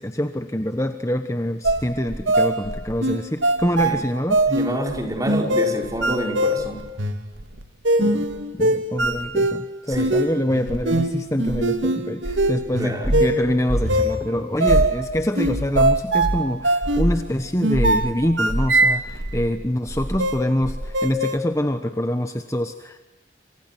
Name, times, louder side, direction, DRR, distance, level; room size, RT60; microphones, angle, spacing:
voice 1, 0.0-4.4 8.0-8.3 8.6-23.0, left 1 dB, 15° left, 7 dB, 1.2 m, -25 dB
sound 1, 1.6-19.6 19.9-21.4, right 1 dB, 90° right, 2.2 m, -22 dB
voice 2, 4.5-6.8 9.9-10.1 12.8-13.1 14.6-14.7, right 1 dB, 20° right, 1 dB, 5.6 m, -27 dB
28.5 x 27.5 x 6.2 m, 1.0 s
head